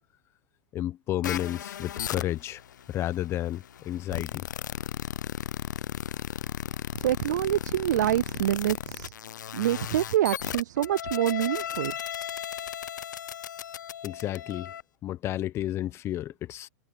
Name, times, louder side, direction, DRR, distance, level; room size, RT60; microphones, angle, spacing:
voice 1, 0.7-2.6 2.9-4.5 14.0-14.7 15.0-16.7, left 13 dB, 25° left, 1.1 m, -31 dB
sound 1, 1.2-14.8, left 10 dB, 85° left, 0.7 m, -36 dB
voice 2, 7.0-9.1 9.5-11.9, right 13 dB, 75° right, 0.4 m, -26 dB
hypercardioid pair, 135°, 10 cm